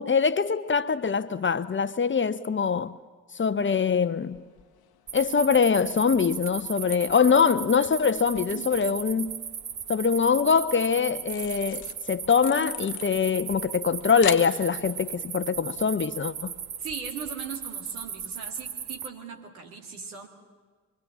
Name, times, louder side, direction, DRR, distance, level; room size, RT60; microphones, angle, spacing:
voice 1, 0.0-2.9 3.4-4.4 5.1-9.3 9.9-16.5, left 6 dB, 30° left, 0.9 m, -23 dB
sound 1, 3.4-17.5, left 11 dB, 60° left, 1.1 m, -45 dB
sound 2, 5.1-19.1, right 7 dB, 45° right, 1.4 m, -37 dB
voice 2, 8.5-8.9 11.3-11.5 16.8-20.3, right 5 dB, 80° right, 2.4 m, -39 dB
25.0 x 24.0 x 7.3 m
figure-of-eight pair, 40°, 42 cm